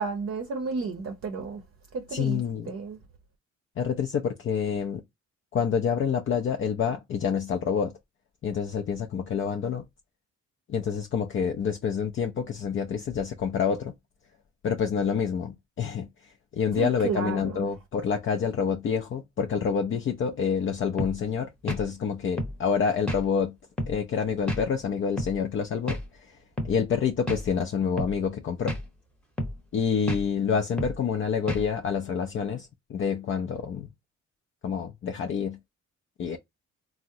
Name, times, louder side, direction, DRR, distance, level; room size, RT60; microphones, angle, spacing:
voice 1, 0.0-1.6 1.9-3.0 16.8-17.7, right 4 dB, 50° right, 0.6 m, -32 dB
voice 2, 2.1-2.7 3.8-5.0 5.5-7.9 8.4-9.8 10.7-13.9 14.6-23.5 23.9-26.4 26.6-28.8 29.7-33.9 34.6-35.6 36.2-36.4, left 6 dB, 45° left, 0.4 m, -28 dB
sound 1, 21.0-21.2 21.7-21.9 22.4-22.6 23.1-23.2 23.8-24.0 24.5-24.6 25.2-25.4 25.9-26.1 26.6-26.7 27.3-27.4 28.0-28.1 28.7-28.9 29.4-29.6 30.1-30.2 30.8-31.0 31.5-31.7, equal, 5° left, 0.8 m, -30 dB
3.4 x 2.1 x 2.6 m
cardioid pair, 90°, 30 cm